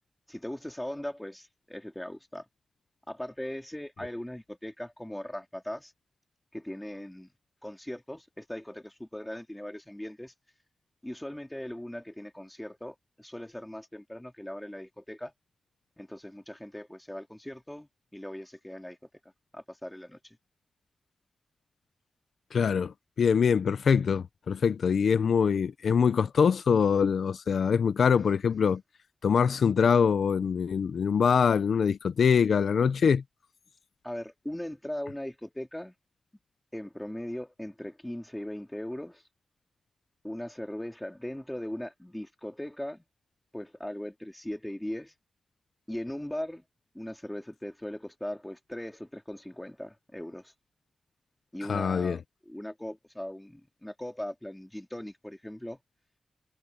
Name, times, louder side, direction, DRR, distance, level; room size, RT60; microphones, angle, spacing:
voice 1, 0.3-2.4 3.1-5.9 6.5-7.3 7.6-10.3 11.0-15.3 16.0-19.0 19.5-20.4 34.0-35.9 36.7-39.2 40.2-43.1 43.5-45.1 45.9-46.7 46.9-50.5 51.5-52.2 52.4-55.8, left 1 dB, 5° left, 3.3 m, -39 dB
voice 2, 22.5-28.8 29.2-33.2 51.7-52.2, left 6 dB, 75° left, 0.6 m, -24 dB
wide cardioid pair, 175°, 0 cm